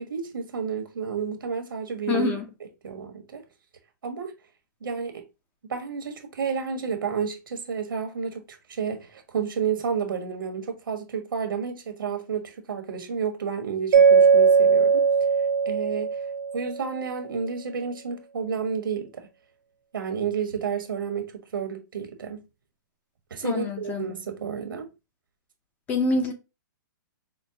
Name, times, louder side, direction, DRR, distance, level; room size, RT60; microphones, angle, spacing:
voice 1, 0.0-2.3 2.8-3.4 4.0-4.3 4.8-5.2 5.7-15.0 15.6-16.2 16.5-19.3 19.9-22.4 23.3-24.9, right 6 dB, 90° right, 1.2 m, -31 dB
voice 2, 2.1-2.4 23.4-24.1 25.9-26.3, left 3 dB, 15° left, 0.6 m, -25 dB
Mallet percussion, 13.9-16.9, right 6 dB, 50° right, 0.7 m, -19 dB
5.0 x 2.1 x 2.7 m
hypercardioid pair, 155°, 11 cm